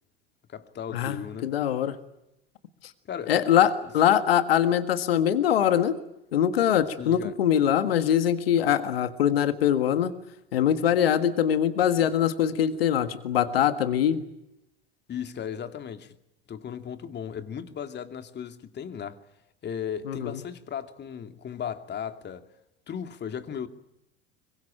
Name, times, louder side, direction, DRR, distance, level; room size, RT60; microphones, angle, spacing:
voice 1, 0.5-1.6 3.0-3.4 7.0-7.3 15.1-16.2 16.5-19.2 19.6-22.5 22.9-23.7, left 8 dB, 35° left, 2.6 m, -36 dB
voice 2, 1.4-2.0 3.3-6.0 6.3-10.1 10.5-14.2 20.1-20.3, left 10 dB, 80° left, 1.7 m, -23 dB
26.0 x 23.0 x 8.9 m
hypercardioid pair, 75°, 29 cm